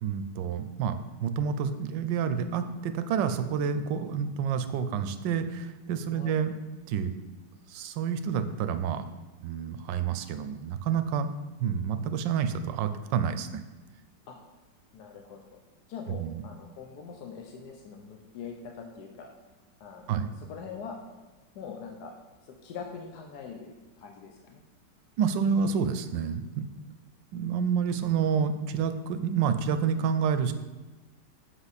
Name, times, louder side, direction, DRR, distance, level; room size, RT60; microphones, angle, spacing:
voice 1, 0.0-6.6 6.9-7.1 7.7-9.1 9.4-11.3 11.6-13.6 16.2-16.4 20.1-20.3 25.2-26.7 27.3-30.5, right 7 dB, 90° right, 10 dB, 1.3 m, -29 dB
voice 2, 14.9-15.6 15.9-19.3 19.8-21.0 21.5-22.1 22.4-24.6, left 6 dB, 70° left, 2 dB, 1.2 m, -43 dB
8.0 x 5.6 x 4.1 m, 1.2 s
omnidirectional pair, 1.9 m